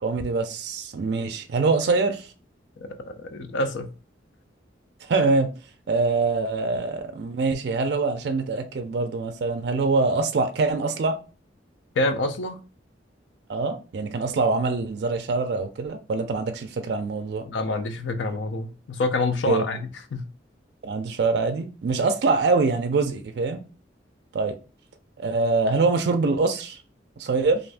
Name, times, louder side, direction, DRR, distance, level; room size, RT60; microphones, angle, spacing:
voice 1, 0.0-2.3 5.1-5.5 5.9-11.2 13.5-17.4 19.5-19.6 20.8-23.6 24.3-24.6 25.2-26.8 27.2-27.6, right 3 dB, 60° right, 0.4 m, -24 dB
voice 2, 2.8-3.9 12.0-12.6 17.4-20.2, left 2 dB, 80° left, 0.5 m, -27 dB
2.5 x 2.5 x 3.3 m
head